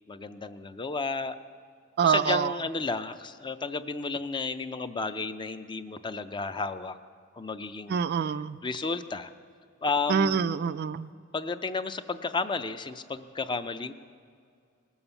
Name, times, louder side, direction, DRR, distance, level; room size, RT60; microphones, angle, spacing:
voice 1, 0.1-1.4 2.0-7.0 7.3-8.0 8.6-9.3 9.8-10.5 11.3-13.9, left 4 dB, 20° left, 10 dB, 0.4 m, -32 dB
voice 2, 2.0-2.5 7.9-8.6 10.1-11.1, right 6 dB, 50° right, 13 dB, 0.3 m, -25 dB
19.0 x 7.1 x 6.9 m, 2.2 s
head